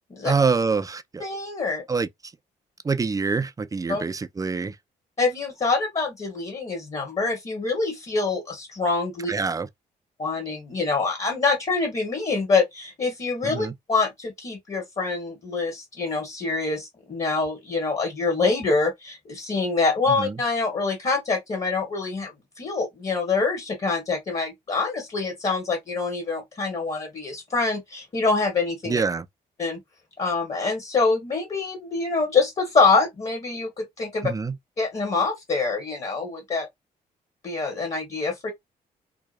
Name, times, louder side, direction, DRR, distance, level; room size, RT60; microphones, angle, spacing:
voice 1, 0.2-1.2 1.9-2.1 2.8-4.8 9.3-9.7 13.4-13.7 20.1-20.4 28.9-29.3 34.2-34.6, right 4 dB, 20° right, 0.4 m, -25 dB
voice 2, 1.2-1.8 3.9-4.0 5.2-9.3 10.2-22.3 22.6-29.0 29.6-29.8 30.2-34.3 34.8-36.7 37.4-38.5, left 4 dB, 35° left, 1.1 m, -25 dB
2.8 x 2.1 x 2.3 m
hypercardioid pair, 50°, 19 cm